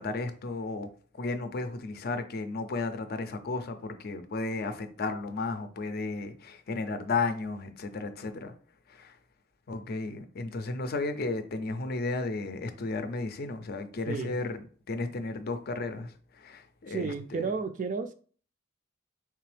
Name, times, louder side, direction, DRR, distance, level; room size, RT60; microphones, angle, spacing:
voice 1, 0.0-8.5 8.9-9.2 9.7-14.6 14.9-17.5, left 3 dB, 50° left, 0.5 m, -34 dB
voice 2, 14.1-14.4 16.9-18.1, right 4 dB, 40° right, 0.3 m, -32 dB
3.4 x 3.3 x 3.3 m
head